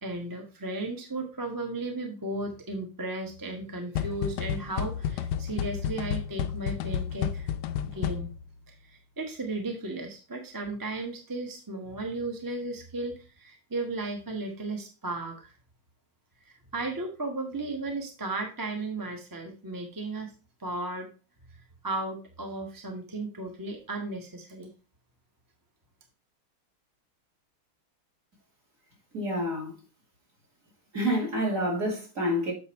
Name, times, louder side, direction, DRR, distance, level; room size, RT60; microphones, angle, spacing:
voice 1, 0.0-7.5 7.9-8.3 8.8-15.5 16.4-20.3 20.6-21.1 21.8-24.7, right 2 dB, 15° right, 0.8 m, -35 dB
sound 1, 4.0-8.6, left 9 dB, 75° left, 1.0 m, -31 dB
voice 2, 29.1-29.8 30.9-32.5, equal, 35° right, 3.1 m, -28 dB
7.8 x 5.3 x 4.2 m
omnidirectional pair, 2.4 m